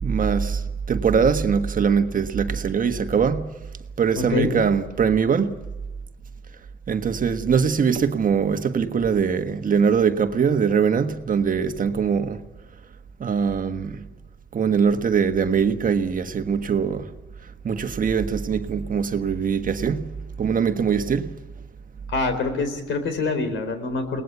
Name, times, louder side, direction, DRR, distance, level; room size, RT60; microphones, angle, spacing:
voice 1, 0.0-3.5 4.0-5.6 6.9-12.4 13.2-14.0 14.5-17.1 17.6-21.4, right 6 dB, 45° right, 1.4 m, -22 dB
voice 2, 4.2-4.5 22.1-24.2, left 3 dB, 75° left, 4.2 m, -25 dB
22.5 x 19.0 x 8.2 m
cardioid pair, 90°, 20 cm